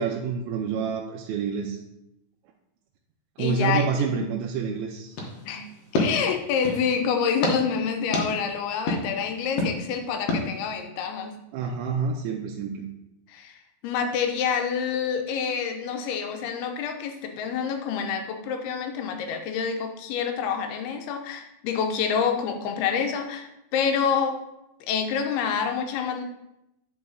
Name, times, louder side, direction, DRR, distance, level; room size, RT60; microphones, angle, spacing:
voice 1, 0.0-1.8 3.4-5.2 11.5-12.9, right 6 dB, 85° right, -1 dB, 2.5 m, -28 dB
voice 2, 3.4-4.4 5.5-5.7 5.9-11.3 13.3-13.6 13.8-24.4 24.9-26.2, left 6 dB, 90° left, 5 dB, 2.8 m, -27 dB
sound 1, 5.1-6.9 7.4-7.6 8.1-8.3 8.9-9.0 9.6-9.7 10.3-10.4, left 2 dB, 60° left, 1.9 m, -27 dB
9.0 x 5.5 x 3.9 m, 0.86 s
omnidirectional pair, 4.4 m